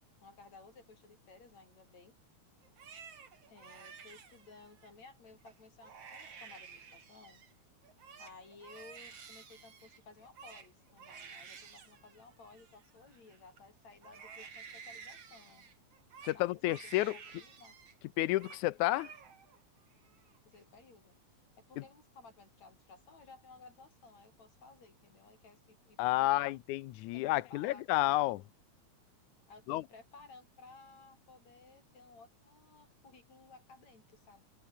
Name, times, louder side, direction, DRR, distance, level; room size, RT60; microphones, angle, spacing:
voice 1, 0.2-2.1 3.5-7.4 8.2-15.7 16.3-17.8 20.4-21.2 21.6-26.6 27.1-28.4 29.5-34.5, left 4 dB, 65° left, 7.6 m, -57 dB
Crying sobbing, 2.6-4.9 5.4-5.6 5.8-7.5 7.8-13.6 14.0-18.0 18.2-18.6 18.9-19.6 20.0-20.6, right 6 dB, 55° right, 3.8 m, -52 dB
voice 2, 16.2-17.2 18.2-19.1 21.8-21.9 26.0-28.4 29.7-29.8, left 17 dB, 85° left, 2.1 m, -31 dB
omnidirectional pair, 3.4 m